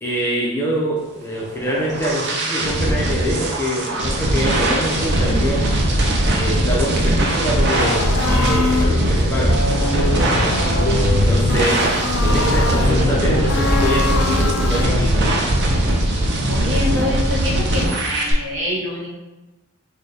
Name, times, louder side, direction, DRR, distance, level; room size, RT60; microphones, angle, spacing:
voice 1, 0.0-5.8 6.3-9.6 11.1-11.8 12.2-15.3, equal, 10° left, -4 dB, 0.5 m, -24 dB
sound 1, 1.4-18.3, right 1 dB, 50° right, 0.5 m, -20 dB
sound 2, 7.7-15.1, left 3 dB, 70° left, 0.4 m, -23 dB
voice 2, 16.5-19.1, left 1 dB, 70° right, -4 dB, 1.0 m, -25 dB
3.9 x 2.2 x 3.2 m, 1.1 s
head